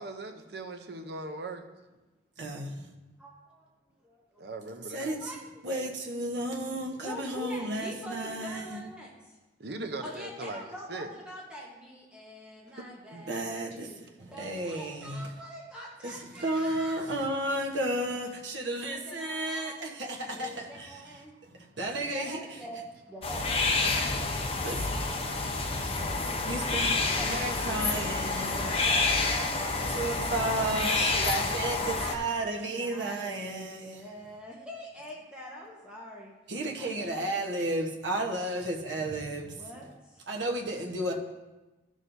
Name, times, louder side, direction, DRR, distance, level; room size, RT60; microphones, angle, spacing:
voice 1, 0.0-1.6 4.4-5.1 7.9-8.1 9.6-11.1 12.8-12.9 13.1-13.3 17.1-17.2 21.5-22.2, right 2 dB, 60° right, 0.7 m, -40 dB
voice 2, 2.4-2.8 4.9-5.2 5.6-8.8 13.3-13.9 14.2-15.2 16.0-16.1 16.4-20.5 21.8-22.4 24.6-24.8 26.5-27.0 27.3-28.7 29.9-34.0 36.5-39.5 40.3-41.1, right 1 dB, 90° right, 1.1 m, -32 dB
voice 3, 3.2-3.7 4.0-4.5 5.0-5.8 7.0-9.4 10.0-14.0 14.2-17.3 18.9-21.3 21.9-30.7 31.0-36.3 36.7-37.5 39.4-40.2, equal, 5° right, 1.1 m, -45 dB
sound 1, 23.2-32.2, left 3 dB, 30° left, 0.7 m, -29 dB
14.0 x 6.3 x 2.7 m
head